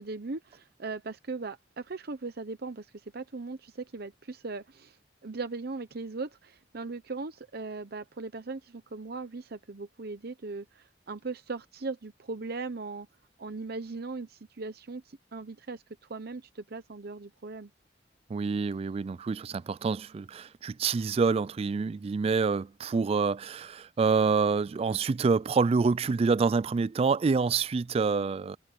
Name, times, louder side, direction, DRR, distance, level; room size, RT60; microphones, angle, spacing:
voice 1, 0.0-5.0 5.2-13.1 13.4-17.7, right 3 dB, 60° right, 0.8 m, -39 dB
voice 2, 18.3-28.6, right 4 dB, 35° right, 0.3 m, -27 dB
head